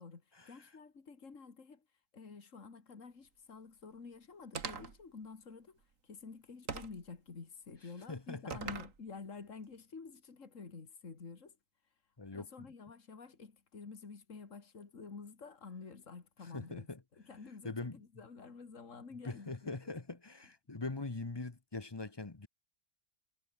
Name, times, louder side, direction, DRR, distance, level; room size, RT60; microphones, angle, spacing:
voice 1, 0.0-1.8 2.1-11.6 12.3-16.9 17.1-19.8, left 4 dB, 70° left, 2.6 m, -50 dB
sound 1, 4.5-5.0 6.7-7.1 8.5-9.0, right 5 dB, 75° right, 2.3 m, -41 dB
voice 2, 8.1-8.6 12.2-12.5 16.5-17.0 17.6-18.0 19.2-22.5, left 3 dB, 20° left, 1.1 m, -42 dB
omnidirectional pair, 1.4 m